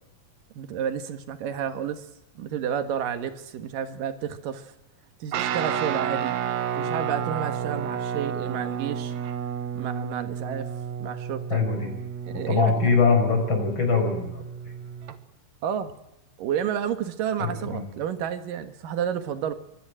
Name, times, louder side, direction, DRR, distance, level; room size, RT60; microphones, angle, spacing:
voice 1, 0.5-2.1 2.4-4.7 5.2-6.4 6.8-9.1 9.7-10.7 11.0-11.6 12.2-12.9 15.6-15.9 16.4-19.5, right 8 dB, 85° right, 10 dB, 3.2 m, -30 dB
Guitar, 5.3-15.2, right 8 dB, 65° right, 2.3 m, -31 dB
voice 2, 11.5-11.9 12.3-14.4 17.4-17.8, left 4 dB, 35° left, 4 dB, 6.4 m, -23 dB
24.5 x 16.0 x 8.8 m, 0.85 s
omnidirectional pair, 3.8 m